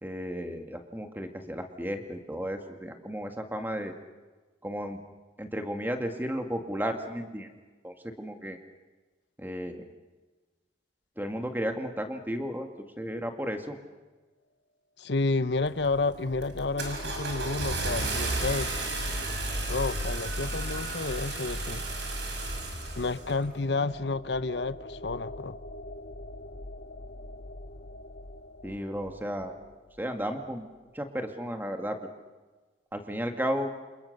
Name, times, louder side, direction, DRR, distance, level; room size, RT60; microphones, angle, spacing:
voice 1, 0.0-3.9 4.6-5.0 5.4-7.5 7.8-8.6 9.4-9.8 11.2-12.7 13.0-13.8 28.6-29.5 30.0-30.7 30.9-32.0 32.9-33.7, equal, 10° right, 5 dB, 2.0 m, -33 dB
voice 2, 15.0-18.7 19.7-21.8 23.0-25.6, left 3 dB, 70° left, 13 dB, 0.9 m, -30 dB
sound 1, 15.5-30.1, left 1 dB, 50° left, 1.1 m, -41 dB
Car / Engine starting, 15.6-16.0 16.4-23.4, right 2 dB, 75° right, 5.8 m, -33 dB
29.0 x 27.0 x 6.7 m, 1.3 s
head